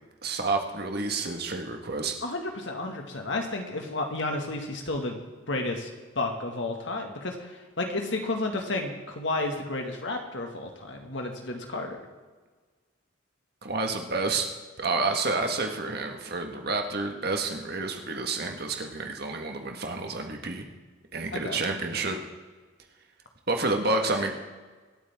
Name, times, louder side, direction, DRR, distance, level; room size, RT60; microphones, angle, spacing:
voice 1, 0.2-2.1 13.6-14.5 14.8-20.6 21.1-22.2 23.5-24.3, right 3 dB, 50° right, 3 dB, 1.8 m, -29 dB
voice 2, 2.2-5.2 5.5-5.9 6.2-12.0 21.3-21.6, left 2 dB, 65° left, 3 dB, 2.1 m, -32 dB
25.5 x 8.8 x 3.7 m, 1.4 s
head